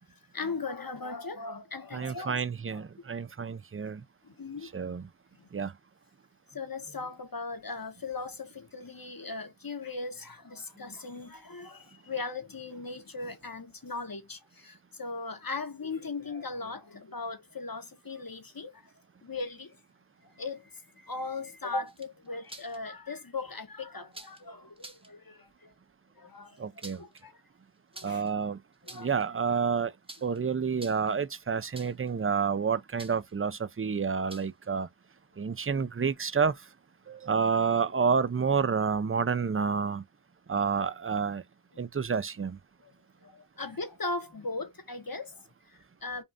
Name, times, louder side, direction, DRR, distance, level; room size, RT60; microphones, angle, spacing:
voice 1, 0.3-3.1 4.2-4.9 5.3-5.5 6.5-18.9 19.2-19.7 20.2-25.7 26.2-27.4 27.9-28.2 28.8-29.3 41.7-41.8 42.8-42.9 43.2-46.2, left 3 dB, 50° left, 1.1 m, -39 dB
voice 2, 1.9-4.0 4.7-5.0 5.5-5.7 26.6-27.0 28.0-28.6 28.9-29.9 30.2-34.9 35.4-36.5 37.1-40.0 40.5-41.4 41.8-42.6, right 6 dB, 30° right, 0.4 m, -29 dB
sound 1, 21.9-22.8 24.1-24.4 24.8-25.1 26.6-27.2 27.9-28.3 28.7-29.2 30.1-30.4 30.7-31.2 31.7-32.1 33.0-33.3 34.3-34.7, right 2 dB, 10° right, 0.8 m, -48 dB
5.3 x 2.5 x 2.5 m
wide cardioid pair, 40°, 45 cm